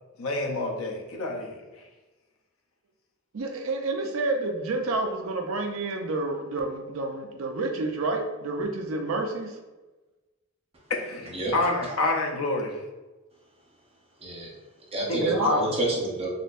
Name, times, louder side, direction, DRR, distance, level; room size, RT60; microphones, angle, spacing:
voice 1, 0.2-1.6 10.9-12.8 15.1-15.7, left 2 dB, 85° left, 2 dB, 0.6 m, -28 dB
voice 2, 3.3-9.6 15.2-15.5, right 3 dB, 75° right, 3 dB, 0.5 m, -29 dB
voice 3, 14.9-16.3, right 1 dB, 30° right, -3 dB, 0.8 m, -29 dB
4.1 x 2.7 x 2.5 m, 1.2 s
head